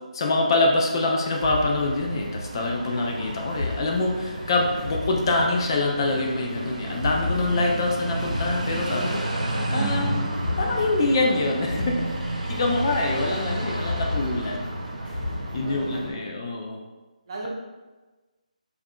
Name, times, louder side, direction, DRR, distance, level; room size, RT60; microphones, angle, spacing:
voice 1, 0.1-10.2 10.6-12.0 12.5-14.7 15.5-16.8, left 2 dB, 35° left, 0 dB, 0.4 m, -25 dB
sound 1, 1.2-2.6 3.4-5.9 6.9-9.4 10.3-12.8 13.7-16.0, left 2 dB, 85° left, 0.7 m, -34 dB
sound 2, 1.5-16.1, right 1 dB, 75° right, 0.8 m, -31 dB
voice 2, 15.5-16.3 17.3-17.5, right 2 dB, 40° right, -3 dB, 0.7 m, -41 dB
4.6 x 2.5 x 2.2 m, 1.2 s
figure-of-eight pair, 155°, 4 cm